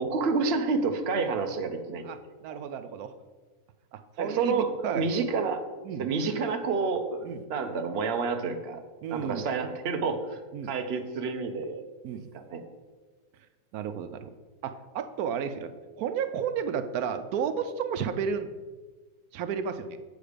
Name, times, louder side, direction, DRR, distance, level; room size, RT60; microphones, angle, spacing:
voice 1, 0.0-2.0 2.5-2.6 4.2-4.7 4.9-5.6 6.0-8.8 9.1-10.4 10.7-11.8 12.3-12.6, right 4 dB, 50° right, 5 dB, 1.0 m, -29 dB
voice 2, 2.0-3.1 3.9-5.1 5.8-6.1 7.2-7.4 9.0-9.5 10.5-10.7 12.0-12.3 13.7-14.3 14.6-18.5 19.3-20.0, right 7 dB, 85° right, 9 dB, 1.1 m, -32 dB
8.3 x 6.5 x 5.0 m, 1.3 s
omnidirectional pair, 1.5 m